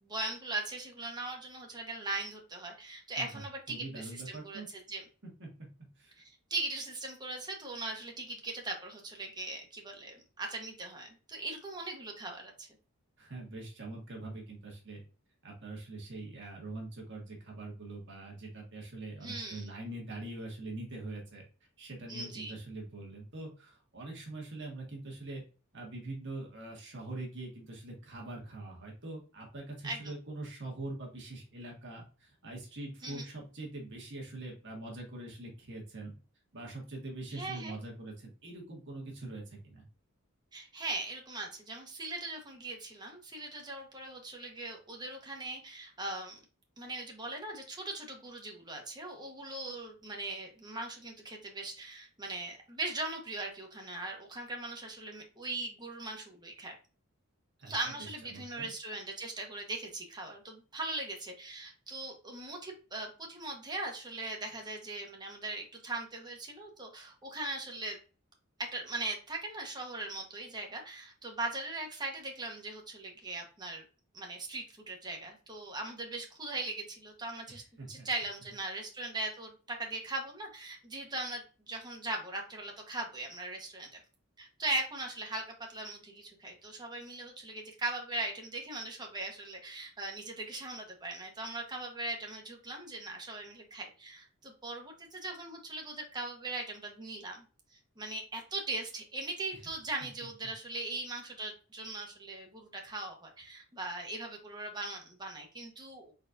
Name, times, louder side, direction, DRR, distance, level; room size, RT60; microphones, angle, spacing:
voice 1, 0.0-4.6 4.9-5.0 6.2-12.7 19.2-19.7 22.1-22.5 29.8-30.1 33.0-33.2 37.3-37.7 40.5-46.4 46.8-56.7 57.7-68.0 68.6-73.8 74.1-77.6 77.9-84.0 84.4-85.4 85.7-97.4 97.7-106.1, right 2 dB, 20° right, 1 dB, 1.1 m, -40 dB
voice 2, 3.7-4.7 5.4-5.5 6.0-6.1 13.2-15.0 15.4-21.4 21.8-25.4 25.7-36.1 36.5-39.8 57.6-57.9 58.2-58.7 77.5-78.1 99.5-99.6, right 2 dB, 55° right, 0 dB, 1.5 m, -43 dB
4.2 x 4.0 x 2.6 m, 0.35 s
head